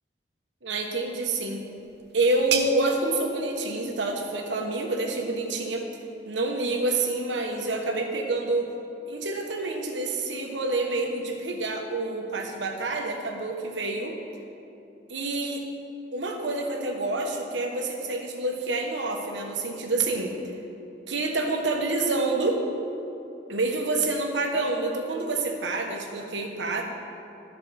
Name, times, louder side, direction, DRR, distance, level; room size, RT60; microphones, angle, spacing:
voice 1, 0.6-1.6 2.1-5.9 6.3-8.7 9.1-14.2 15.1-15.6 16.1-20.3 21.1-22.7 23.5-26.8, right 2 dB, 85° right, 2 dB, 1.2 m, -28 dB
sound 1, 1.2-6.6, right 7 dB, 65° right, 0.7 m, -37 dB
13.5 x 4.7 x 6.3 m, 2.9 s
head